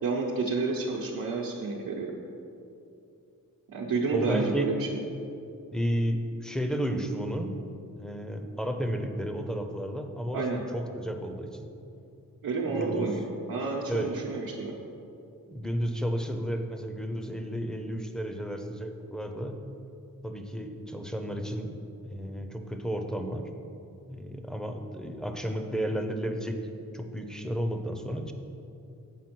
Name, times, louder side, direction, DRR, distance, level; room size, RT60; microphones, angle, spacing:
voice 1, 0.0-2.1 3.7-4.9 10.3-10.6 12.4-14.7, right 3 dB, 85° right, -4 dB, 0.9 m, -30 dB
voice 2, 4.1-4.7 5.7-7.5 8.0-11.7 12.7-13.1 13.9-14.2 15.5-19.6 20.2-21.8 22.0-23.5 24.1-26.6 26.9-28.3, equal, ahead, 5 dB, 0.5 m, -32 dB
7.4 x 5.0 x 6.0 m, 2.7 s
wide cardioid pair, 130°, 34 cm